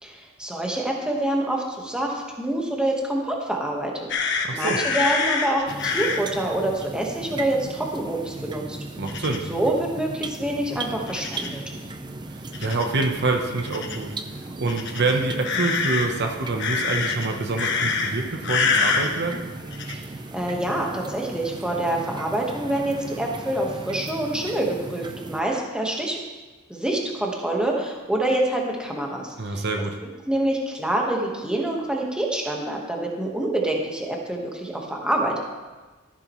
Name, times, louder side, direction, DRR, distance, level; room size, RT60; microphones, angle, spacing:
voice 1, 0.0-3.9 4.3-8.8 9.5-11.6 20.3-26.2 26.7-29.6 30.3-35.4, right 1 dB, 5° right, -1 dB, 1.3 m, -26 dB
sound 1, 4.1-6.2 9.1-9.4 11.1-11.6 12.5-12.9 13.6-14.0 14.7-16.1 16.6-17.3 17.6-18.1 18.4-19.1 19.7-19.9, left 5 dB, 60° left, 1.1 m, -25 dB
voice 2, 4.4-4.8 9.0-9.4 12.3-14.2 14.6-19.5 29.4-30.0, right 3 dB, 55° right, 3 dB, 1.0 m, -26 dB
sound 2, 5.7-25.4, right 2 dB, 20° right, 0.5 m, -37 dB
14.0 x 9.7 x 3.1 m, 1.2 s
head